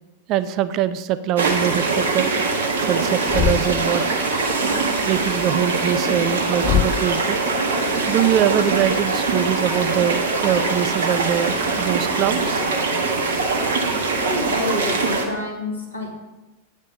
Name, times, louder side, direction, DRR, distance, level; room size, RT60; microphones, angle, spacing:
voice 1, 0.3-2.3 2.9-4.2 5.1-7.4 8.0-12.6 13.2-13.7, right 11 dB, 40° right, 13 dB, 0.4 m, -23 dB
sound 1, 1.4-15.2, right 3 dB, 60° right, 1.4 m, -22 dB
Thump thud, 3.3-3.9 6.6-7.2, left 13 dB, 35° left, 0.4 m, -22 dB
voice 2, 14.2-16.1, left 2 dB, 80° left, -1 dB, 2.3 m, -28 dB
8.7 x 5.2 x 6.4 m, 1.1 s
figure-of-eight pair, 90°, 0 cm